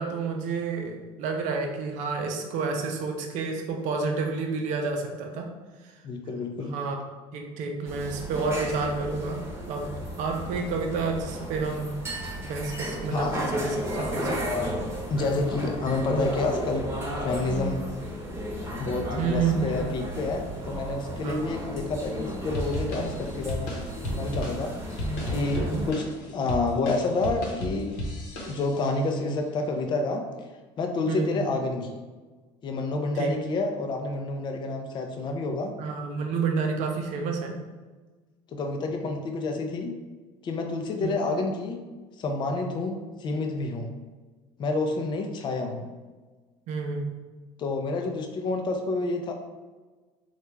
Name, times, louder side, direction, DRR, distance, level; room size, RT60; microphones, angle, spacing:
voice 1, 0.0-5.5 6.7-7.0 7.3-9.4 9.7-9.9 10.2-11.9 12.4-14.6 19.2-19.9 21.2-21.5 25.5-25.9 31.1-31.4 33.2-33.4 35.8-37.5 41.0-41.1 46.7-47.1, right 4 dB, 65° right, 3 dB, 0.6 m, -29 dB
voice 2, 6.0-6.8 13.1-13.4 15.1-16.9 17.2-17.8 18.8-23.7 24.0-26.0 26.3-27.9 28.5-30.2 30.8-32.0 32.6-35.7 38.5-39.9 40.4-41.8 42.2-43.9 44.6-45.9 47.6-49.3, left 3 dB, 35° left, 3 dB, 0.4 m, -29 dB
sound 1, 7.9-25.9, equal, 20° right, 0.9 m, -34 dB
sound 2, 22.5-29.0, left 1 dB, 80° left, 0.8 m, -34 dB
3.3 x 2.3 x 3.1 m, 1.3 s
supercardioid pair, 105°, 13 cm